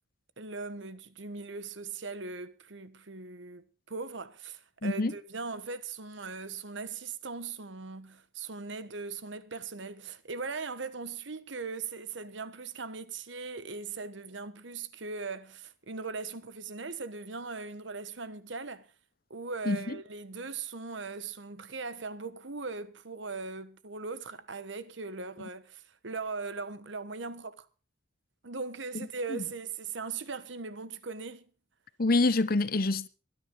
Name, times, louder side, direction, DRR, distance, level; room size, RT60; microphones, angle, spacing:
voice 1, 0.4-18.9 19.3-27.7 28.4-31.5, right 4 dB, 70° right, 1.2 m, -39 dB
voice 2, 4.8-5.1 19.7-20.0 28.9-29.4 32.0-33.1, left 2 dB, 50° left, 0.8 m, -27 dB
23.0 x 9.9 x 3.8 m
head